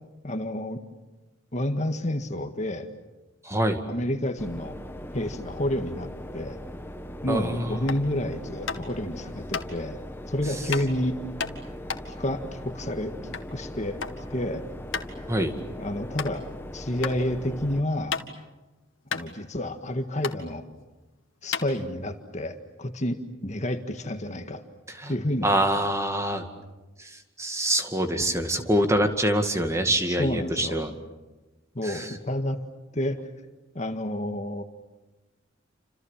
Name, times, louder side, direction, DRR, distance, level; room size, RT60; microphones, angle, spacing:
voice 1, 0.2-0.8 1.5-2.9 3.9-4.8 5.1-6.6 7.2-11.2 12.1-13.1 13.5-14.0 14.3-14.7 15.8-16.4 16.7-18.2 19.1-20.6 21.4-24.6 25.1-25.6 30.1-30.8 31.8-32.6 32.9-33.3 33.8-34.6, left 1 dB, 35° left, 7 dB, 1.7 m, -30 dB
voice 2, 3.4-3.8 7.3-7.8 15.3-15.5 25.0-25.1 25.4-26.5 27.0-30.9 31.8-32.1, right 1 dB, 15° right, 6 dB, 2.2 m, -25 dB
sound 1, 4.4-17.8, left 1 dB, 10° left, 1.2 m, -40 dB
sound 2, 7.9-8.1 8.7-9.0 9.5-9.7 10.7-10.9 11.4-13.5 13.8-14.2 14.5-14.6 14.9-15.1 15.6-15.7 16.1-16.3 17.0-17.1 17.6-18.5 18.8-18.9 19.1-19.9 20.2-20.4 21.0-21.1 21.5-22.2, left 6 dB, 85° left, 2.0 m, -32 dB
29.0 x 27.0 x 7.5 m, 1.1 s
head